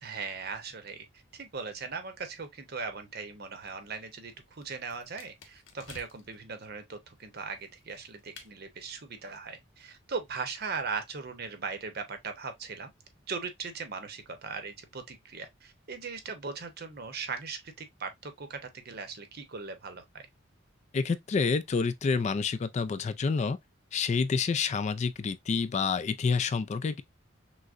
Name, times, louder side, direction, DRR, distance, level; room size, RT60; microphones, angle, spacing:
voice 1, 0.0-1.1 1.3-12.9 13.3-20.3, right 5 dB, 50° right, 0.8 m, -39 dB
Breaking Bones, 3.6-6.4 7.2-8.5, left 5 dB, 80° left, 1.0 m, -54 dB
voice 2, 20.9-23.6 23.9-27.0, left 5 dB, 35° left, 0.3 m, -28 dB
6.1 x 2.1 x 2.4 m
head